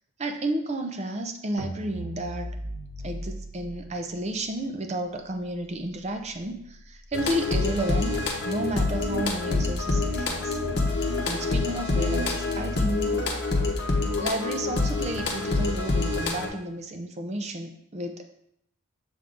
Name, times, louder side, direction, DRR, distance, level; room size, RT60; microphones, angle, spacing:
voice 1, 0.2-2.5 3.0-8.2 8.5-10.6 11.3-13.3 14.2-18.2, right 1 dB, 30° right, 5 dB, 0.5 m, -32 dB
sound 1, 1.6-7.9, right 1 dB, 85° right, 0.9 m, -41 dB
sound 2, 7.1-16.5, left 3 dB, 55° left, 0.9 m, -26 dB
6.9 x 3.6 x 3.8 m, 0.74 s
head